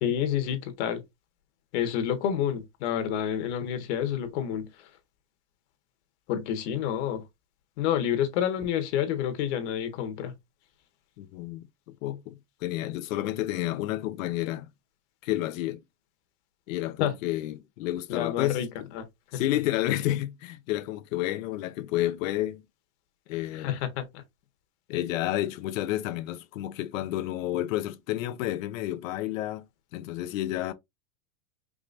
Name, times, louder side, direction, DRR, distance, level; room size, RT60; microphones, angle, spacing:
voice 1, 0.0-1.0 1.7-4.9 6.3-7.2 7.8-10.3 17.0-17.1 18.1-18.7 18.9-19.0 19.3-19.4 23.5-24.2, left 9 dB, 55° left, 1.2 m, -29 dB
voice 2, 11.2-11.7 12.0-14.7 15.2-15.8 16.7-18.9 19.3-22.6 23.3-23.8 24.9-29.6 29.9-30.7, left 14 dB, 80° left, 0.7 m, -30 dB
4.9 x 3.0 x 2.5 m
supercardioid pair, 160°, 39 cm